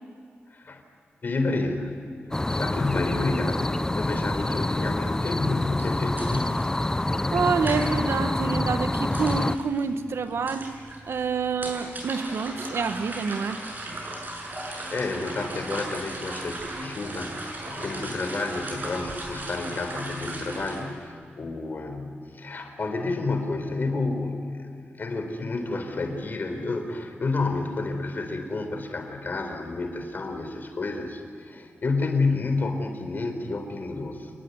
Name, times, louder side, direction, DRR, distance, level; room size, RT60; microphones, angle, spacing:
voice 1, 0.5-0.8 1.2-1.9 2.3-6.5 14.6-24.7 25.0-34.3, left 3 dB, 50° left, 5 dB, 4.2 m, -30 dB
sound 1, 2.3-9.6, left 2 dB, 15° left, 0.6 m, -27 dB
sound 2, 5.4-20.8, right 1 dB, 45° right, 6.8 m, -38 dB
voice 2, 7.3-10.8 11.1-13.6, right 5 dB, 75° right, 9 dB, 1.3 m, -27 dB
28.0 x 21.0 x 9.7 m, 2.5 s
wide cardioid pair, 135°, 4 cm